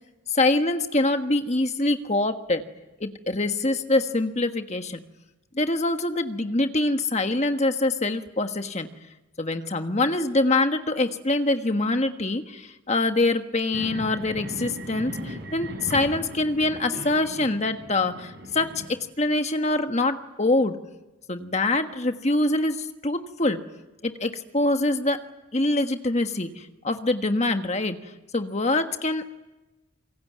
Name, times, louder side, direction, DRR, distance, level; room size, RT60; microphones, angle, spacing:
voice 1, 0.3-2.7 3.0-5.0 5.5-8.9 9.4-20.8 21.3-23.6 24.0-25.2 25.5-28.0 28.3-29.3, left 2 dB, 30° left, 7 dB, 1.4 m, -24 dB
sound 1, 13.7-18.9, equal, 55° right, 6.1 m, -37 dB
26.5 x 23.0 x 9.5 m, 1.1 s
head